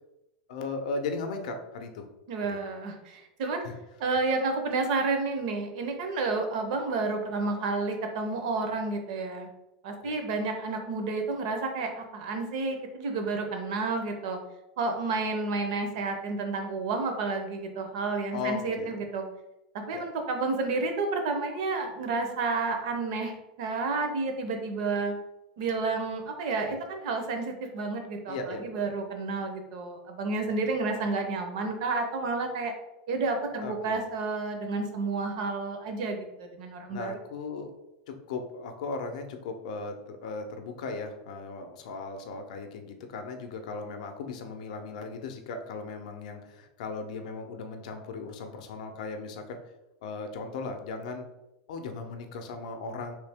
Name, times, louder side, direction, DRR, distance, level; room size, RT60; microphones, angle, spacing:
voice 1, 0.5-2.1 2.4-2.6 3.6-3.8 10.0-10.1 18.3-19.0 19.9-20.0 26.6-26.8 28.3-28.9 33.6-34.0 36.9-37.7 38.1-49.6 50.0-51.3 51.7-53.1, left 4 dB, 60° left, 6 dB, 0.5 m, -37 dB
voice 2, 2.3-3.6 4.0-9.5 9.8-14.4 14.8-19.2 19.7-25.1 25.6-32.7 33.1-37.2, right 3 dB, 50° right, 5 dB, 0.6 m, -30 dB
3.1 x 2.8 x 3.4 m, 0.93 s
supercardioid pair, 175°, 4 cm